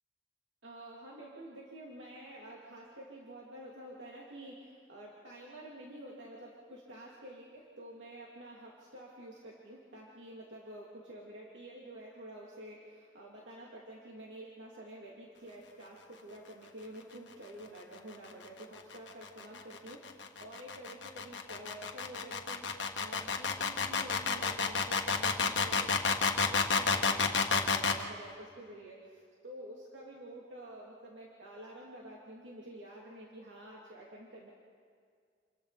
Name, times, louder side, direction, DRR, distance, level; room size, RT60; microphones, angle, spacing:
voice 1, 0.6-22.7 23.0-34.5, right 1 dB, 85° right, -4 dB, 2.7 m, -49 dB
sound 1, 18.8-28.0, left 5 dB, 85° left, 1.5 m, -30 dB
29.0 x 22.0 x 4.2 m, 2.1 s
head